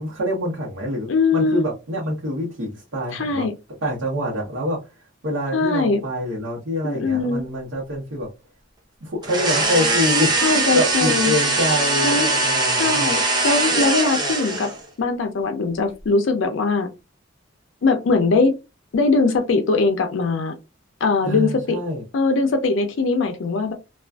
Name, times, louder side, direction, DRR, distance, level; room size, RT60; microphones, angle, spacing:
voice 1, 0.0-3.5 3.8-4.8 5.2-8.3 9.0-13.1 21.2-22.0, left 1 dB, 85° right, 0.9 m, -26 dB
voice 2, 1.1-1.7 3.1-3.5 5.5-6.0 6.8-7.4 10.3-11.3 12.0-12.3 12.8-14.7 15.0-16.9 17.8-18.5 18.9-20.5 21.0-21.8 22.1-23.7, left 3 dB, 75° left, 0.4 m, -21 dB
sound 1, 9.2-14.8, right 2 dB, 25° right, 0.6 m, -21 dB
2.4 x 2.3 x 2.2 m
head